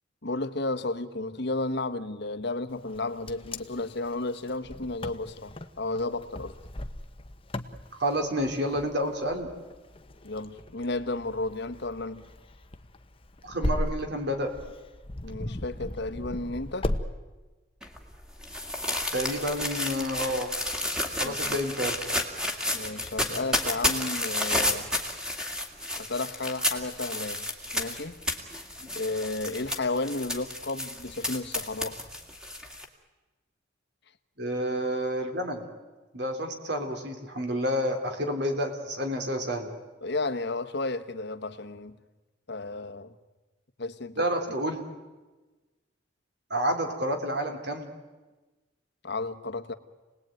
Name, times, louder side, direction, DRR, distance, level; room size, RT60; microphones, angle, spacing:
voice 1, 0.2-6.6 10.2-12.2 15.2-16.9 21.2-21.6 22.7-24.9 26.0-27.5 27.7-28.2 28.9-32.0 40.0-42.0 42.5-43.1 43.8-44.2 49.0-49.7, left 2 dB, 60° left, 1.3 m, -33 dB
Wind, 2.9-17.0, left 1 dB, 30° left, 1.1 m, -37 dB
voice 2, 8.0-9.5 13.4-14.5 19.1-20.5 21.2-22.0 34.4-35.6 36.1-39.7 44.2-44.8 46.5-47.9, equal, 55° right, 3.6 m, -29 dB
sound 1, 17.8-32.8, left 1 dB, 5° right, 2.3 m, -31 dB
28.5 x 20.0 x 9.2 m
head